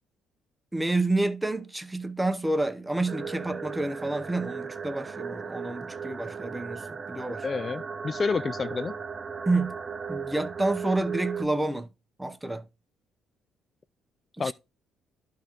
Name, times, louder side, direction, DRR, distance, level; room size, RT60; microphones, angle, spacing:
voice 1, 0.7-7.5 9.5-9.8 10.1-11.9 12.2-12.6 14.4-14.5, right 2 dB, 10° right, 0.9 m, -29 dB
sound 1, 3.1-11.5, right 6 dB, 40° right, 0.7 m, -36 dB
voice 2, 7.4-8.9 14.4-14.5, left 5 dB, 40° left, 0.3 m, -29 dB
11.5 x 3.8 x 4.4 m
supercardioid pair, 60°, 0 cm